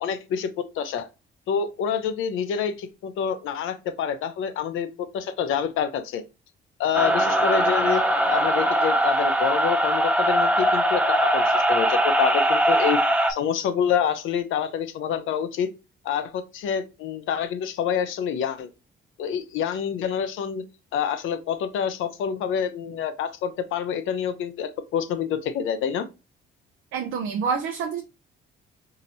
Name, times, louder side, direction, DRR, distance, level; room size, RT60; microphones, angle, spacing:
voice 1, 0.0-1.1 1.5-6.2 6.8-8.0 8.3-13.0 13.3-15.7 16.0-18.7 19.2-20.6 20.9-26.1, left 8 dB, 80° left, 0.6 m, -27 dB
sound 1, 6.9-13.3, right 1 dB, 10° right, 0.7 m, -21 dB
voice 2, 26.9-28.0, right 6 dB, 85° right, 0.6 m, -27 dB
4.2 x 2.8 x 2.7 m
cardioid pair, 90°, 20 cm